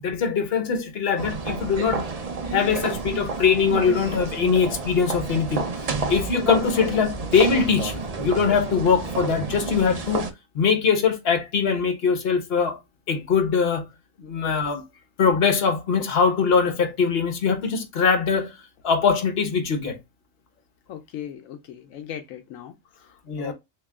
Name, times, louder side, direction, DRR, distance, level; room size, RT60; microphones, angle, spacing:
voice 1, 0.0-2.1 2.5-10.3 10.5-12.8 13.1-13.9 14.2-14.8 15.2-18.5 18.8-20.0 23.3-23.5, left 6 dB, 50° left, 1.1 m, -22 dB
sound 1, 1.2-10.3, right 4 dB, 55° right, 0.4 m, -30 dB
voice 2, 20.9-23.5, left 9 dB, 80° left, 1.0 m, -38 dB
3.0 x 3.0 x 3.4 m
omnidirectional pair, 1.4 m